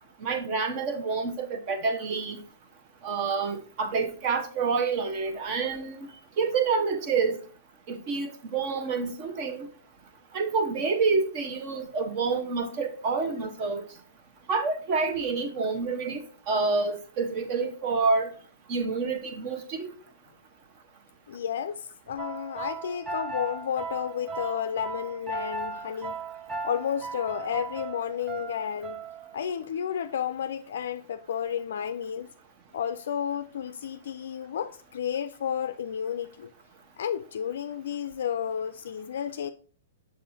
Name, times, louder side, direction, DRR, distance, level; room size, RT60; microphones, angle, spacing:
voice 1, 0.2-2.4 3.0-6.1 6.4-7.4 7.9-9.7 10.3-13.8 14.5-18.3 18.7-20.0, right 4 dB, 40° right, 1.0 m, -28 dB
voice 2, 21.3-26.2 26.6-29.0 29.3-32.3 32.7-36.5 37.0-39.5, left 8 dB, 70° left, 0.3 m, -32 dB
sound 1, 22.2-29.5, right 4 dB, 20° right, 0.6 m, -37 dB
6.6 x 5.5 x 2.7 m
hypercardioid pair, 130°, 0 cm